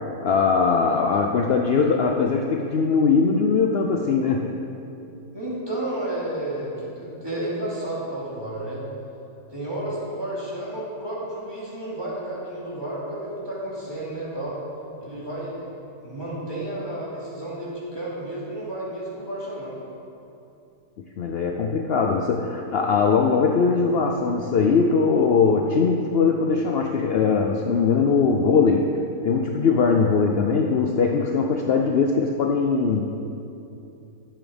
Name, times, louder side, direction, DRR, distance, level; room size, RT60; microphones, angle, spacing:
voice 1, 0.2-4.4 21.2-29.0 29.2-33.0, left 5 dB, 65° left, 2 dB, 0.6 m, -21 dB
voice 2, 5.3-8.8 9.5-14.6 15.0-15.7 16.0-19.8, right 1 dB, 15° right, -8 dB, 2.8 m, -31 dB
12.0 x 7.1 x 5.2 m, 2.8 s
omnidirectional pair, 1.7 m